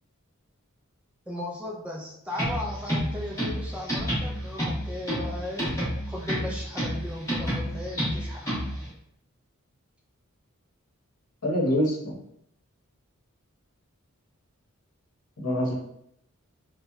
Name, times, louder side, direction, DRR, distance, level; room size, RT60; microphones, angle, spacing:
voice 1, 1.3-5.7 6.1-8.4, left 1 dB, 5° right, -3 dB, 0.3 m, -36 dB
sound 1, 2.3-8.9, equal, 15° left, 0.8 m, -30 dB
voice 2, 11.4-12.2 15.4-15.7, equal, 90° left, -4 dB, 0.8 m, -25 dB
2.9 x 2.1 x 2.2 m, 0.74 s
head